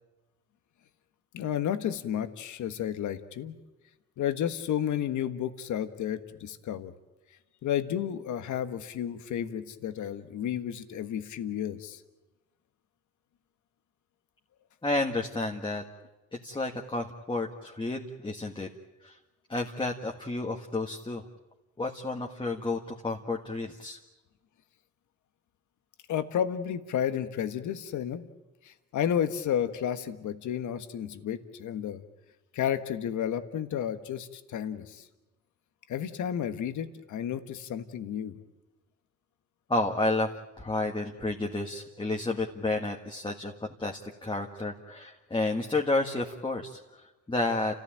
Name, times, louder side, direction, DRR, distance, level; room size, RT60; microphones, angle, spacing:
voice 1, 1.3-3.5 4.2-6.9 7.6-12.0 26.1-28.3 28.6-32.0 32.5-35.1 35.9-38.4, left 9 dB, 75° left, 10 dB, 1.5 m, -32 dB
voice 2, 14.8-15.8 16.3-18.7 19.0-19.2 19.5-21.3 21.8-24.0 39.7-47.8, left 2 dB, 15° left, 1 dB, 1.8 m, -31 dB
30.0 x 15.0 x 8.9 m, 1.1 s
cardioid pair, 90°, 30 cm